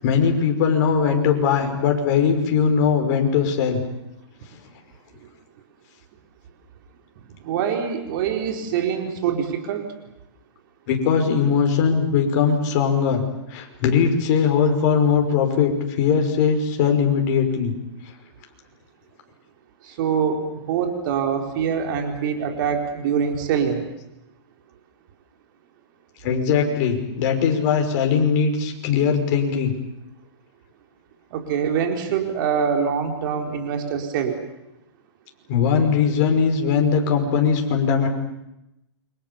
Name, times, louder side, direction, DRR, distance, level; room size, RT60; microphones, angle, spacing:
voice 1, 0.0-3.8 10.9-13.3 13.5-15.7 16.0-17.7 26.2-29.7 35.5-38.1, left 6 dB, 40° left, 3 dB, 5.8 m, -20 dB
voice 2, 7.4-9.9 19.8-23.8 31.3-34.4, right 7 dB, 45° right, 4 dB, 4.0 m, -24 dB
29.0 x 25.5 x 7.2 m, 0.88 s
hypercardioid pair, 150°, 15 cm